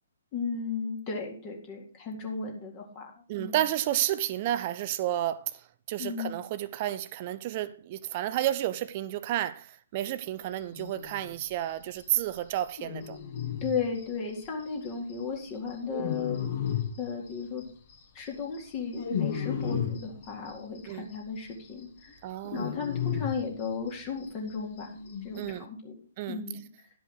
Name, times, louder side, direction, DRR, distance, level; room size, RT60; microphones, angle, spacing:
voice 1, 0.3-3.1 3.4-3.6 6.0-6.3 13.6-16.4 17.0-17.6 18.1-22.2 22.5-24.9 25.2-26.0 26.3-26.7, left 5 dB, 25° left, 2.1 m, -35 dB
voice 2, 3.3-5.6 5.9-13.2 20.9-21.1 22.2-22.7 25.4-25.6 26.2-26.4, right 13 dB, 35° right, 0.5 m, -31 dB
sound 1, 10.7-11.4 11.7-11.8 12.0-12.1 12.3-12.4 12.6-15.1 15.4-17.6 17.9-20.8 21.1-21.2 21.5-24.2 24.5-24.6 24.8-25.6, left 8 dB, 45° left, 1.6 m, -34 dB
11.0 x 5.3 x 6.5 m
figure-of-eight pair, 125°, 0 cm